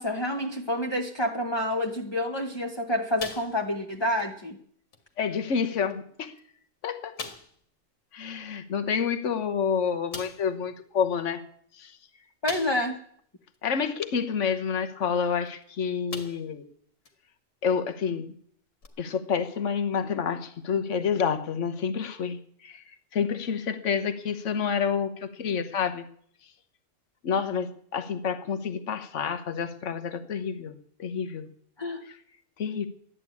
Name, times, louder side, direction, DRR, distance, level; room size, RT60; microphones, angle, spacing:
voice 1, 0.0-4.6 12.4-13.0 31.8-32.0, left 1 dB, 20° left, 2 dB, 1.1 m, -28 dB
sound 1, 3.2-3.9 4.2-4.4 4.9-5.0 5.9-6.0 6.4-6.5 7.2-7.6 9.3-9.4 10.1-10.5 12.5-13.0 13.5-13.6 15.5-15.6 16.1-16.6 17.1-17.2 18.8-18.9, left 4 dB, 85° left, 2.4 m, -40 dB
voice 2, 5.2-6.3 6.8-7.1 8.1-11.4 11.8-11.9 13.6-16.6 17.6-18.3 19.0-22.8 23.1-26.0 27.2-31.5 32.6-32.9, left 6 dB, 65° left, 9 dB, 1.4 m, -29 dB
13.5 x 11.0 x 8.4 m, 0.62 s
omnidirectional pair, 1.4 m